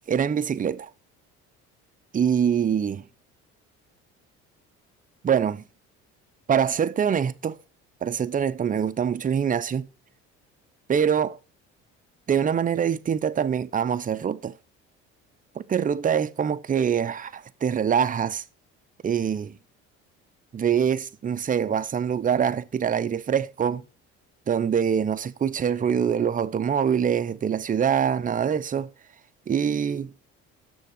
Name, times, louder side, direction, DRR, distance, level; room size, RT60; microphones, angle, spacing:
voice 1, 0.1-0.9 2.1-3.0 5.2-5.6 6.5-7.6 8.0-9.9 10.9-11.4 12.3-14.6 15.6-18.4 19.0-19.6 20.5-23.8 24.5-28.9 29.5-30.1, right 8 dB, 25° right, 0.6 m, -24 dB
6.7 x 6.3 x 4.9 m
supercardioid pair, 80°, 31 cm